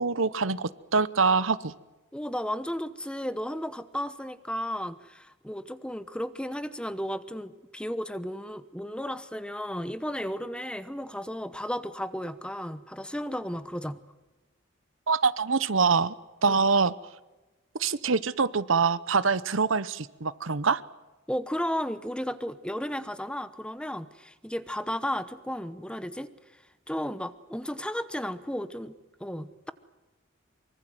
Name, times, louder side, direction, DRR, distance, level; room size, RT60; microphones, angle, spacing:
voice 1, 0.0-1.7 15.1-16.1 16.4-16.9 17.8-20.8, right 5 dB, 70° right, 16 dB, 0.9 m, -24 dB
voice 2, 2.1-14.0 16.5-16.6 21.3-26.6 26.9-29.7, equal, 5° left, 13 dB, 1.0 m, -34 dB
24.5 x 24.0 x 7.8 m, 1.1 s
head